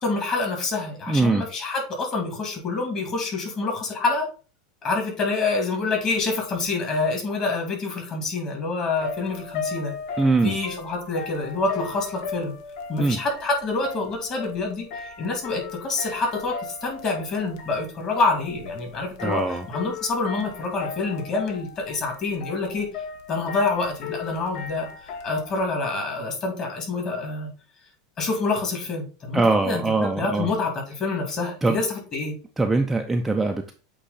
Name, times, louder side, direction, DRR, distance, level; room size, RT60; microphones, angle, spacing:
voice 1, 0.0-4.3 4.8-9.9 10.4-12.6 12.9-22.9 23.3-27.5 28.2-32.4, left 3 dB, 30° left, 1 dB, 2.4 m, -27 dB
voice 2, 1.1-1.4 10.2-10.6 13.0-13.2 19.2-19.7 29.3-30.5 31.6-31.8 32.6-33.7, right 3 dB, 5° right, 3 dB, 0.5 m, -22 dB
sound 1, 8.9-25.7, left 5 dB, 55° left, 1.0 m, -37 dB
8.2 x 3.1 x 4.0 m, 0.36 s
supercardioid pair, 145°, 2 cm